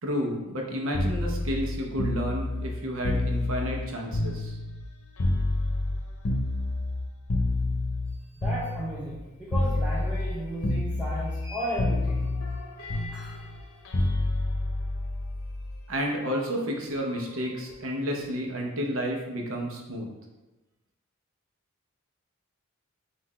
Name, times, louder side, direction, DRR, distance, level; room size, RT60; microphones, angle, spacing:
voice 1, 0.0-4.6 15.9-20.1, equal, 70° right, 0 dB, 0.8 m, -31 dB
sound 1, 0.9-4.9 5.2-9.2 9.5-10.4 10.6-11.5 11.8-15.8 17.0-17.2, left 2 dB, 85° left, 0.7 m, -28 dB
voice 2, 8.4-12.3 13.1-13.3, equal, 5° right, -8 dB, 0.5 m, -34 dB
5.7 x 2.5 x 3.1 m, 1.1 s
head